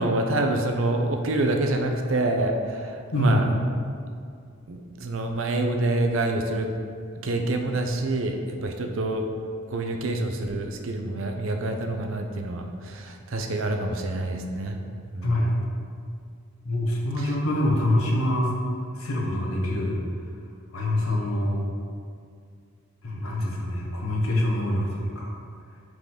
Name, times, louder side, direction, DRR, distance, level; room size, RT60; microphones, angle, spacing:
voice 1, 0.0-3.5 4.7-6.7 7.2-8.4 8.6-9.3 9.7-14.8 15.1-15.3 17.2-17.3, right 2 dB, 70° right, 4 dB, 0.6 m, -27 dB
voice 2, 3.1-3.5 15.2-15.5 16.6-18.5 18.9-20.0 20.7-21.6 23.0-25.3, left 1 dB, 85° left, -2 dB, 1.2 m, -25 dB
6.0 x 5.0 x 3.8 m, 2.3 s
head